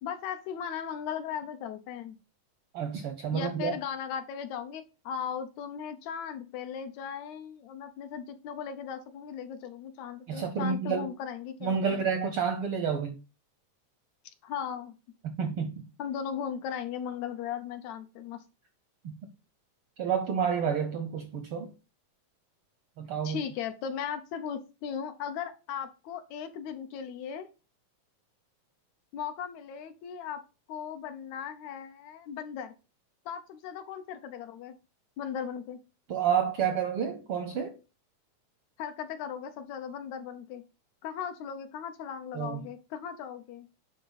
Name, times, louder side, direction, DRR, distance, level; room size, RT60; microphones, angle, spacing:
voice 1, 0.0-2.2 3.3-12.1 14.2-15.0 16.0-18.4 23.2-27.5 29.1-30.4 30.7-32.7 33.3-34.8 35.2-35.8 38.8-40.6 41.0-43.7, left 8 dB, 75° left, 2.1 m, -37 dB
voice 2, 2.7-3.7 10.3-11.1 11.6-13.1 15.2-15.9 19.0-19.2 20.0-21.7 23.0-23.4 36.1-37.8 42.3-42.6, right 7 dB, 70° right, 1.3 m, -29 dB
9.5 x 3.8 x 4.0 m
omnidirectional pair, 3.3 m